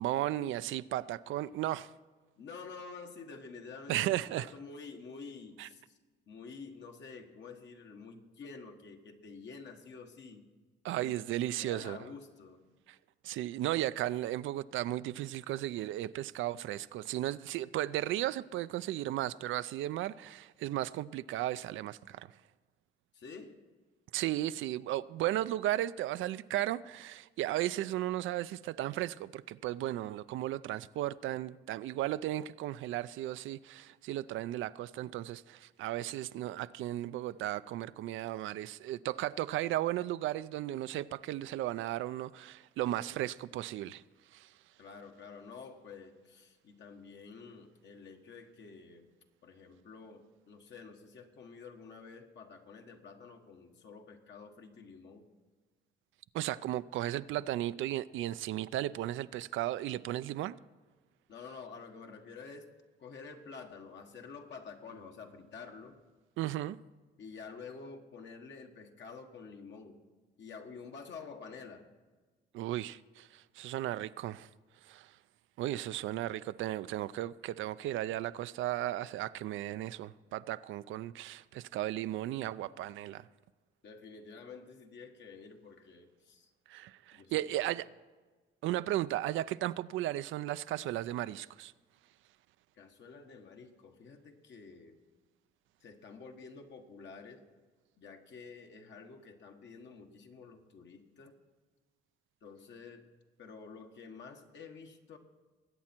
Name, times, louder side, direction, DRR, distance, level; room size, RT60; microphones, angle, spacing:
voice 1, 0.0-1.9 3.9-4.5 5.6-5.7 10.8-12.0 13.2-22.3 24.1-44.0 44.3-44.5 56.3-60.6 66.4-66.8 72.5-74.5 74.9-75.1 75.6-83.3 86.7-87.9 88.6-91.7, right 14 dB, 80° right, 0.4 m, -35 dB
voice 2, 2.4-6.0 6.3-10.4 11.0-11.2 11.6-12.6 23.1-23.6 44.8-49.1 49.4-55.3 61.3-62.7 63.0-66.0 67.2-70.0 70.4-71.9 83.8-86.5 87.1-87.8 92.7-95.0 95.8-97.4 98.0-101.3 102.4-103.1 103.4-105.2, left 5 dB, 65° left, 1.6 m, -49 dB
21.0 x 8.5 x 4.5 m
cardioid pair, 90°, 20 cm